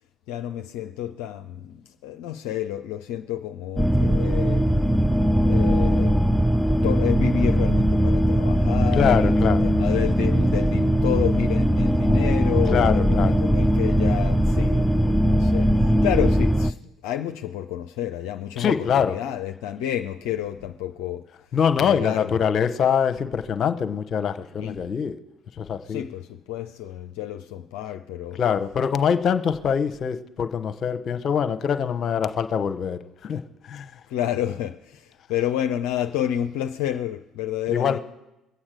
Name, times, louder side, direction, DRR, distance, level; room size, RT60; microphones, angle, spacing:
voice 1, 0.3-4.6 5.4-21.3 21.8-22.4 24.6-24.8 25.9-28.4 34.1-38.0, left 11 dB, 65° left, 0.5 m, -30 dB
sound 1, 3.8-16.7, equal, 5° right, 0.4 m, -20 dB
voice 2, 8.9-9.7 12.7-13.3 18.6-19.2 21.5-25.2 25.6-26.0 28.3-34.0 37.7-38.0, left 7 dB, 45° left, 0.9 m, -24 dB
22.5 x 8.7 x 4.9 m
figure-of-eight pair, 50°, 0 cm